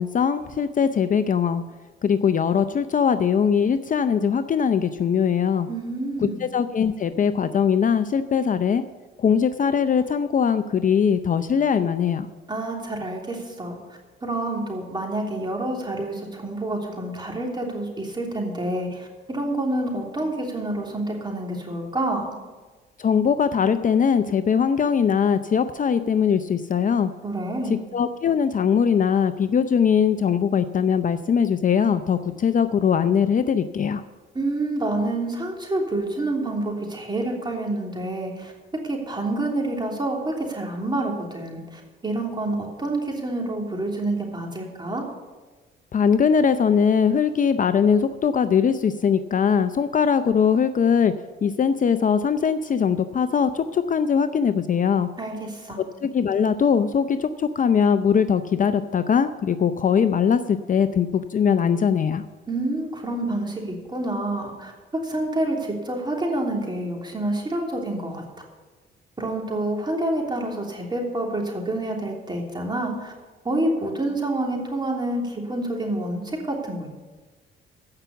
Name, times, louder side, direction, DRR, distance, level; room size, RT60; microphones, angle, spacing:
voice 1, 0.0-1.6 2.0-5.7 6.4-8.8 9.2-12.3 23.0-27.1 27.9-34.0 45.9-51.1 51.4-55.1 56.0-62.2, left 7 dB, 40° left, 10 dB, 0.6 m, -21 dB
voice 2, 5.7-6.4 12.5-13.8 14.2-22.3 27.2-27.8 34.3-38.5 38.8-45.0 55.2-55.8 62.5-64.7 65.0-68.2 69.2-73.1 73.4-76.9, right 2 dB, 20° right, 0 dB, 3.2 m, -28 dB
15.5 x 5.8 x 7.2 m, 1.3 s
cardioid pair, 90°, 20 cm